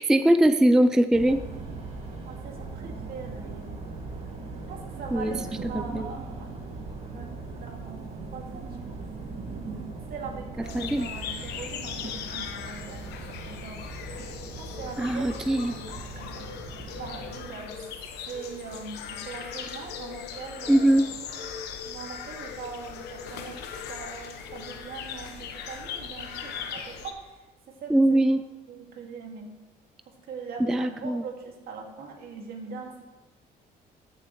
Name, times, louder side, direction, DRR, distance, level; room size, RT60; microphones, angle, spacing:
voice 1, 0.0-1.4 5.1-5.3 5.7-6.1 10.7-11.1 15.0-15.7 20.7-21.1 27.9-28.4 30.7-31.2, right 1 dB, 5° right, 11 dB, 0.3 m, -21 dB
sound 1, 1.1-17.4, right 3 dB, 40° right, 2.1 m, -39 dB
voice 2, 2.2-3.8 4.7-6.5 7.1-9.0 10.1-13.8 14.6-16.5 16.9-17.8 18.3-28.4 28.7-29.5 30.3-33.0, right 5 dB, 65° right, 1 dB, 2.1 m, -42 dB
sound 2, 10.6-27.1, left 7 dB, 80° left, 1.0 m, -39 dB
14.5 x 6.9 x 3.1 m, 1.1 s
cardioid pair, 110°, 17 cm